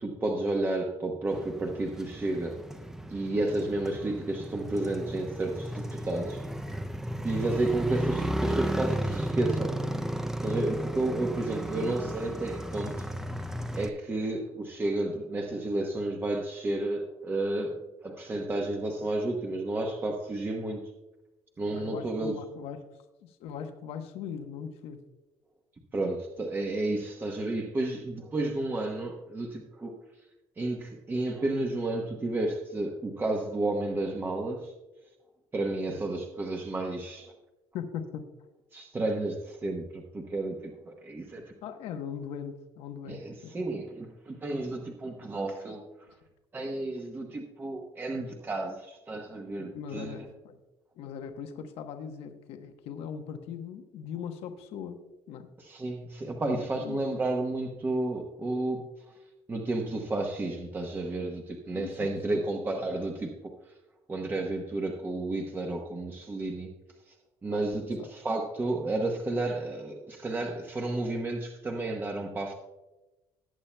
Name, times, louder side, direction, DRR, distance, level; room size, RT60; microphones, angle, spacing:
voice 1, 0.0-2.6 3.1-6.4 7.2-9.7 10.4-13.1 13.7-20.9 21.6-22.4 25.9-29.9 30.6-34.7 35.5-37.3 38.7-41.5 43.1-46.1 46.5-50.3 55.6-58.8 59.5-63.3 64.1-66.7 67.1-67.2 67.4-72.5, right 2 dB, 20° right, 2 dB, 1.0 m, -32 dB
Motorcycle, 1.3-13.9, right 1 dB, 5° right, 0.5 m, -34 dB
voice 2, 21.7-22.9 23.2-25.0 35.9-36.0 37.7-38.3 41.6-43.6 49.6-50.6 51.0-55.5 56.4-57.2 61.7-62.4 67.5-67.6 68.0-68.1, left 7 dB, 75° left, 6 dB, 1.0 m, -40 dB
19.0 x 8.6 x 2.2 m, 1.0 s
cardioid pair, 135°, 10 cm